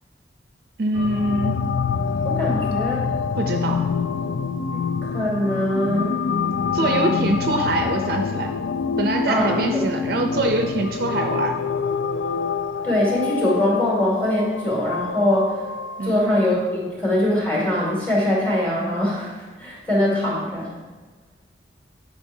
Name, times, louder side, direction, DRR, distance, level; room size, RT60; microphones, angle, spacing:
voice 1, 0.8-1.6 3.3-3.9 6.7-8.5 9.0-11.6 16.0-16.2, right 2 dB, 55° right, 4 dB, 0.5 m, -24 dB
sound 1, 0.9-16.2, left 6 dB, 80° left, 0.3 m, -26 dB
voice 2, 2.2-3.1 4.7-6.2 9.3-9.8 12.8-15.7 16.0-20.7, left 1 dB, 10° left, -6 dB, 2.2 m, -22 dB
9.9 x 5.4 x 2.7 m, 1.2 s
head